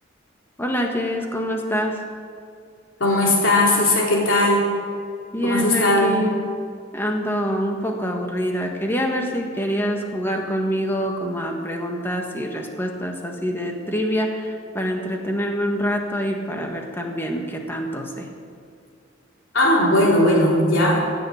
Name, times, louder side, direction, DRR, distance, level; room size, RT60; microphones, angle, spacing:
voice 1, 0.6-2.0 5.3-6.4 6.9-18.3, equal, 10° left, 2 dB, 1.5 m, -25 dB
voice 2, 3.0-4.7 5.4-6.2 19.5-21.0, left 1 dB, 70° left, -4 dB, 3.7 m, -18 dB
16.0 x 6.8 x 8.3 m, 2.3 s
head